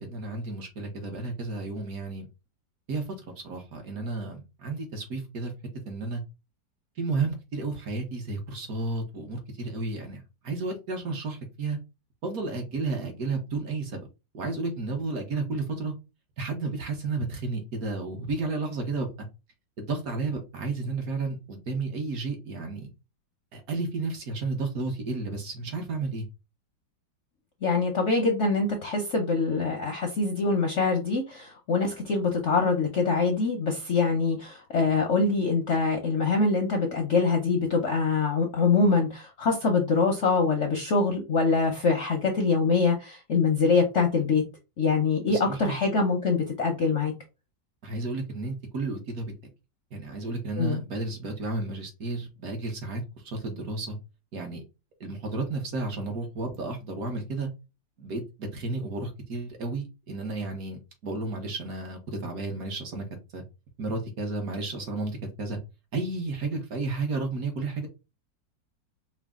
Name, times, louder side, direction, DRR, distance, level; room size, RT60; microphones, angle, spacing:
voice 1, 0.0-2.3 2.9-3.0 3.4-5.5 5.9-6.2 7.0-11.8 12.2-14.1 14.3-15.9 16.4-19.1 19.8-22.9 23.5-26.2 45.2-45.8 47.8-49.3 49.9-54.0 54.3-54.6 55.0-57.5 58.0-63.1 63.3-63.4 63.8-65.6 65.9-67.9, right 3 dB, 60° right, 3 dB, 1.2 m, -32 dB
voice 2, 27.6-44.4 44.8-47.1 50.6-50.8, left 4 dB, 65° left, 2 dB, 0.7 m, -24 dB
4.8 x 2.0 x 3.5 m, 0.27 s
omnidirectional pair, 2.0 m